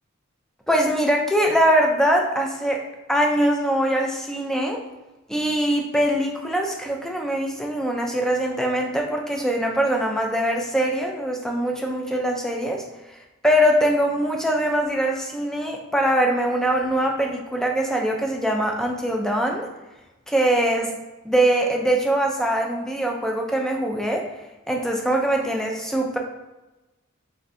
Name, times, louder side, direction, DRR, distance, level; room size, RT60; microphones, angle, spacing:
voice 1, 0.7-2.8 3.1-4.8 5.3-12.8 13.4-19.7 20.3-21.0 21.2-24.3 24.7-26.2, right 1 dB, 5° left, 1 dB, 0.3 m, -22 dB
3.2 x 2.5 x 2.5 m, 1.1 s
head